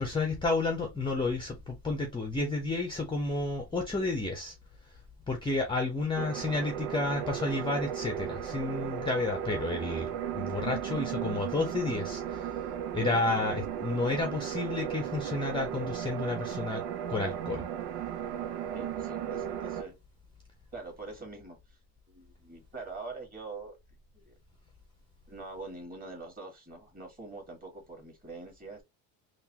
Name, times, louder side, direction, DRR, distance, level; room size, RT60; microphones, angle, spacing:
voice 1, 0.0-4.6 4.9-5.0 5.3-12.6 12.9-16.8 17.1-17.7, left 3 dB, 10° left, 0.7 m, -31 dB
sound 1, 6.2-19.8, right 9 dB, 75° right, 0.7 m, -35 dB
voice 2, 18.7-20.0 20.7-21.8 22.1-23.8 24.1-24.3 25.3-28.8, right 3 dB, 20° right, 1.9 m, -44 dB
3.9 x 2.6 x 2.8 m
supercardioid pair, 105°, 45 cm